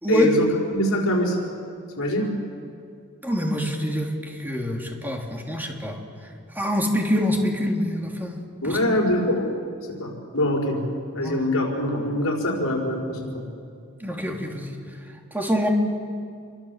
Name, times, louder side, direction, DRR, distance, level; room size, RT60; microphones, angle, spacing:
voice 1, 0.1-0.5 0.7-1.4 2.0-2.3 8.6-9.5 9.9-10.9 11.1-13.3, left 1 dB, 70° left, -1 dB, 5.4 m, -24 dB
voice 2, 3.2-4.1 4.4-6.0 6.5-8.4 8.6-8.9 11.2-11.4 14.0-14.7 15.3-15.7, equal, 10° right, 1 dB, 3.0 m, -25 dB
28.0 x 23.5 x 7.4 m, 2.3 s
head